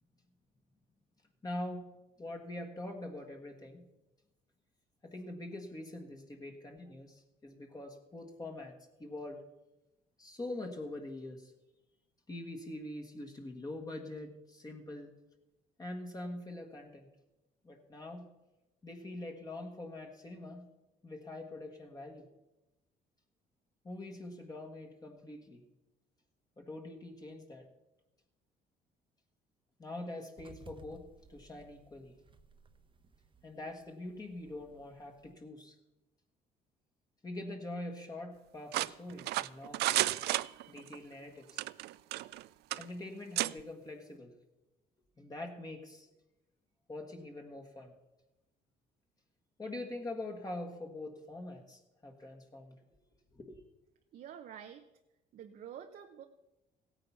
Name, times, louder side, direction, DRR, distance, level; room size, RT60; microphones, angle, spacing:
voice 1, 1.4-3.9 5.0-9.4 10.2-11.5 12.3-15.2 15.8-17.1 17.6-18.3 18.8-20.7 21.0-22.3 23.8-25.6 26.6-27.7 29.8-32.1 33.4-35.8 37.2-39.9 40.7-41.6 42.8-44.3 45.2-46.1 46.9-47.9 49.6-52.8 53.3-53.6, left 1 dB, 20° left, 2 dB, 1.6 m, -44 dB
sound 1, 30.4-35.3, right 3 dB, 30° right, 1.0 m, -59 dB
sound 2, 38.7-41.0 41.5-42.4 42.7-42.9 43.4-43.5, right 17 dB, 75° right, 0.4 m, -32 dB
voice 2, 54.1-54.8 55.3-56.3, right 9 dB, 55° right, 5 dB, 0.8 m, -48 dB
16.0 x 9.0 x 5.7 m, 0.99 s
cardioid pair, 110°, 17 cm